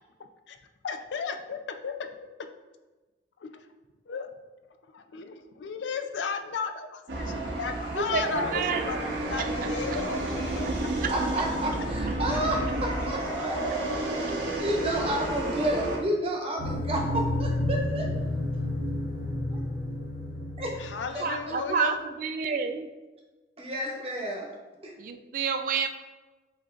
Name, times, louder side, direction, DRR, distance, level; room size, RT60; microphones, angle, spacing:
voice 1, 0.8-2.1 3.4-3.6 4.1-4.3 4.9-9.0 9.3-10.7 20.8-22.0, left 5 dB, 85° left, 7 dB, 0.4 m, -34 dB
sound 1, 7.1-16.0, right 1 dB, 85° right, 0.9 m, -31 dB
voice 2, 7.9-9.0 9.4-9.5 9.9-10.0 10.6-10.7 11.0-11.4 12.3-12.4 13.7-13.8 21.2-22.9 25.0-25.9, right 5 dB, 50° right, 8 dB, 0.3 m, -30 dB
voice 3, 11.1-13.6 14.6-18.1 20.6-20.8 21.1-21.2 23.6-24.5 24.8-24.9, right 1 dB, 30° right, -1 dB, 0.8 m, -30 dB
sound 2, 16.6-21.4, left 1 dB, 45° left, 0.8 m, -30 dB
7.6 x 2.6 x 2.4 m, 1.2 s
head